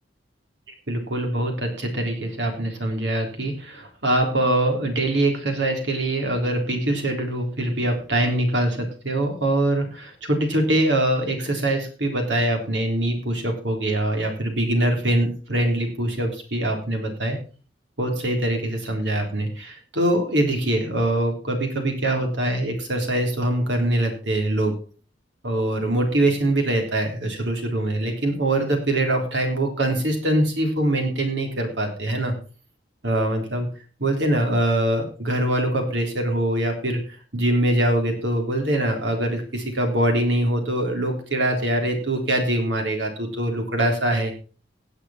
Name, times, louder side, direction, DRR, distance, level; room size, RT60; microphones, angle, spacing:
voice 1, 0.9-17.4 18.0-24.7 25.4-32.3 33.0-33.7 34.0-37.0 37.3-44.3, right 1 dB, 75° right, 3 dB, 3.7 m, -23 dB
17.0 x 8.1 x 4.4 m, 0.38 s
head